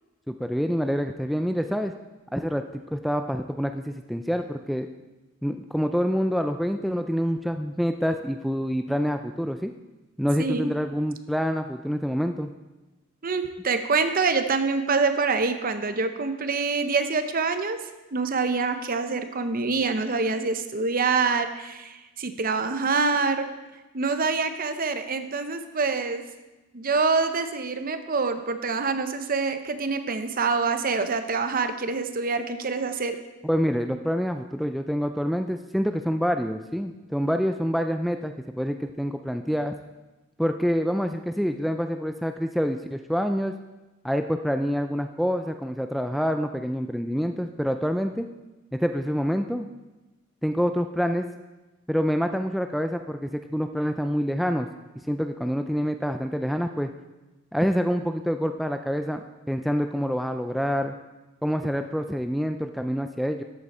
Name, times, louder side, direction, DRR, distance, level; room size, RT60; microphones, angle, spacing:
voice 1, 0.3-1.9 2.3-4.9 5.4-9.7 10.2-12.5 33.4-39.8 40.4-43.5 44.0-48.3 48.8-49.7 50.4-51.3 51.9-54.7 55.1-56.9 57.5-59.2 59.5-61.0 61.4-63.4, equal, ahead, 6 dB, 0.3 m, -26 dB
voice 2, 10.4-10.7 13.2-17.8 18.1-23.5 23.9-26.3 26.7-33.2, right 4 dB, 45° right, 9 dB, 0.8 m, -26 dB
13.0 x 8.5 x 4.3 m, 1.1 s
head